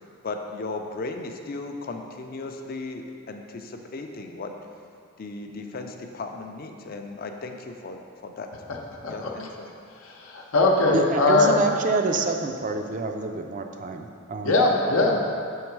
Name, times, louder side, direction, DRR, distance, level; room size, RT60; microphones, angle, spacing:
voice 1, 0.2-4.5 5.2-8.5 9.1-9.7, left 3 dB, 45° left, 4 dB, 0.4 m, -36 dB
voice 2, 10.0-11.5 14.4-15.2, left 2 dB, 90° left, 0 dB, 0.7 m, -21 dB
voice 3, 10.9-14.6, right 3 dB, 40° right, 5 dB, 0.4 m, -27 dB
6.3 x 3.8 x 4.6 m, 2.3 s
head